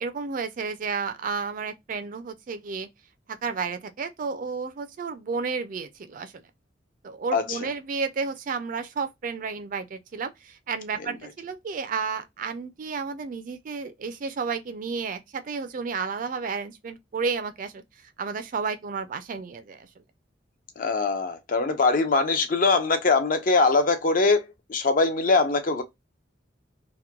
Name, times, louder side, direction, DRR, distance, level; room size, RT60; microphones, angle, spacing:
voice 1, 0.0-2.9 3.3-6.4 7.0-17.8 18.2-19.9, right 5 dB, 50° right, 0.4 m, -32 dB
voice 2, 20.8-25.8, left 3 dB, 50° left, 0.5 m, -22 dB
2.9 x 2.1 x 2.2 m
head